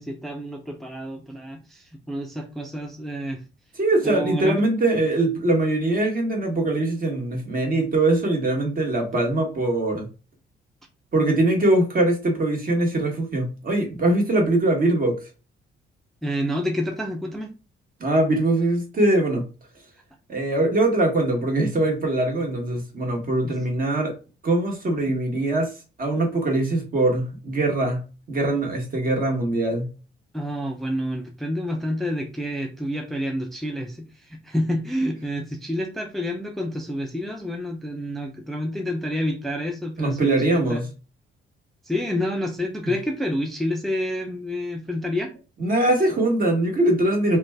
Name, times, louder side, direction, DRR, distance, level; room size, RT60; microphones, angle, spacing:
voice 1, 0.0-3.4 4.0-4.6 16.2-17.5 30.3-40.8 41.8-45.3, equal, ahead, 2 dB, 0.4 m, -28 dB
voice 2, 3.8-10.1 11.1-15.1 18.0-19.4 20.3-24.1 24.4-25.7 26.0-28.0 28.3-29.9 40.0-40.9 45.6-47.4, right 2 dB, 45° right, 2 dB, 1.2 m, -22 dB
2.5 x 2.2 x 3.3 m, 0.33 s
cardioid pair, 90°, 20 cm